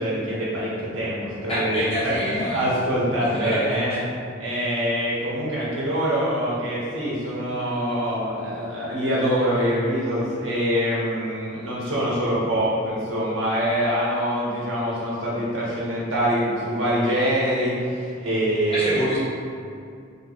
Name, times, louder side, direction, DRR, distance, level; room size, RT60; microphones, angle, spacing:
voice 1, 0.0-1.8 2.0-4.0 4.4-19.2, equal, 85° right, -7 dB, 1.5 m, -24 dB
voice 2, 1.5-2.6 3.3-3.7 18.7-19.2, equal, 30° left, -9 dB, 1.3 m, -26 dB
3.6 x 3.0 x 4.5 m, 2.4 s
head